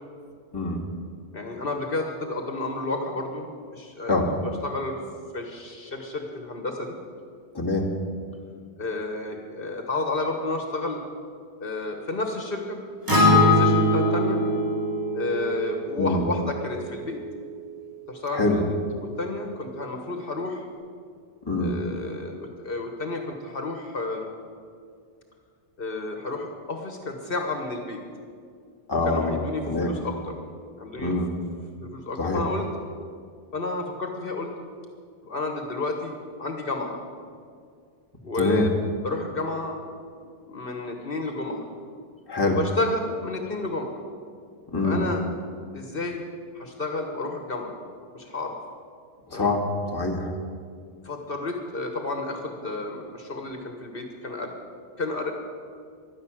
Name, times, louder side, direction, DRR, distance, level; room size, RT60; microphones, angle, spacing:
voice 1, 1.3-3.5 3.7-4.2 4.6-5.0 5.3-7.0 8.8-11.0 11.6-12.8 13.0-14.4 15.1-17.2 18.1-20.7 21.6-24.3 25.8-28.0 29.0-30.1 30.7-31.2 31.8-32.6 33.5-34.5 35.2-37.0 38.2-38.7 39.0-39.8 40.5-41.7 42.5-44.0 44.8-45.2 45.7-46.2 46.5-47.8 48.1-48.6 49.3-49.5 51.0-54.5 55.0-55.3, left 2 dB, 65° left, 3 dB, 1.6 m, -31 dB
voice 2, 7.5-7.9 16.0-16.3 18.3-18.6 21.4-21.8 28.9-29.4 29.7-30.0 31.0-31.3 32.2-32.4 38.3-38.6 42.3-42.6 44.7-45.1 49.3-50.3, left 2 dB, 25° left, -1 dB, 1.8 m, -24 dB
Acoustic guitar, 13.1-17.3, left 1 dB, 20° right, 2.1 m, -22 dB
12.0 x 10.5 x 8.9 m, 2.2 s
omnidirectional pair, 1.0 m